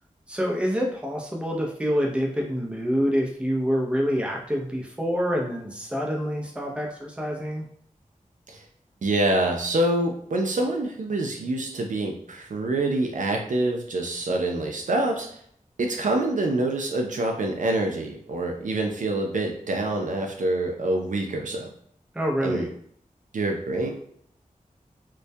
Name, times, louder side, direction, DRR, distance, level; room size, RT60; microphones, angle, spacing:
voice 1, 0.3-7.7 22.1-22.7, equal, 10° right, -1 dB, 0.5 m, -26 dB
voice 2, 9.0-15.3 15.8-21.7 22.4-22.7 23.3-23.9, right 2 dB, 65° right, 2 dB, 0.4 m, -26 dB
2.2 x 2.1 x 2.6 m, 0.64 s
wide cardioid pair, 85°, 14 cm